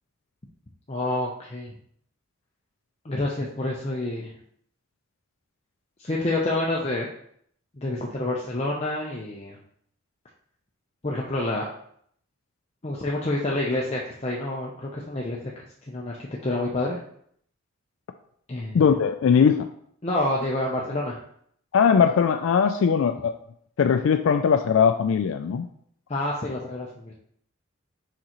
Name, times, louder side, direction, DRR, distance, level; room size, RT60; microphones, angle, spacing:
voice 1, 0.9-1.8 3.0-4.3 6.0-7.1 7.8-9.6 11.0-11.7 12.8-15.5 15.9-16.2 16.4-17.0 18.5-18.8 20.0-21.2 26.1-27.1, left 2 dB, 30° left, -3 dB, 0.6 m, -28 dB
voice 2, 18.7-19.7 21.7-23.3 23.8-25.7, left 6 dB, 75° left, 7 dB, 0.3 m, -20 dB
6.5 x 5.0 x 3.0 m, 0.67 s
head